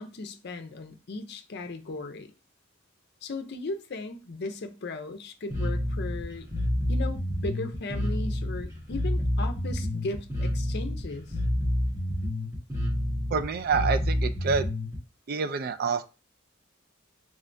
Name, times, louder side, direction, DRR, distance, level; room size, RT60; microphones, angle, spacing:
voice 1, 0.0-2.3 3.2-6.5 6.9-11.3, left 2 dB, 55° left, 0.5 m, -37 dB
Bass guitar, 5.5-15.0, left 1 dB, 15° right, 1.3 m, -28 dB
voice 2, 13.3-14.7 15.3-16.0, right 5 dB, 50° right, 0.4 m, -27 dB
3.6 x 3.3 x 2.6 m
head